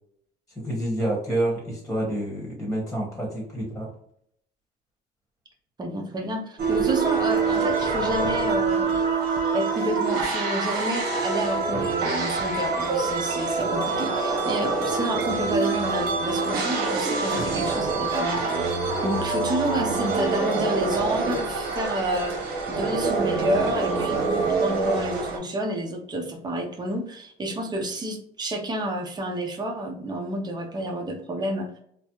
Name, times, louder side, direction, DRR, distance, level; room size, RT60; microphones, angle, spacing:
voice 1, 0.5-3.9, right 1 dB, 5° left, -3 dB, 1.3 m, -28 dB
voice 2, 5.8-8.9 9.5-18.8 19.0-31.7, right 1 dB, 25° right, 2 dB, 0.8 m, -29 dB
sound 1, 6.6-25.4, right 4 dB, 65° right, 1.0 m, -25 dB
3.2 x 2.1 x 2.8 m, 0.70 s
cardioid pair, 110°, 17 cm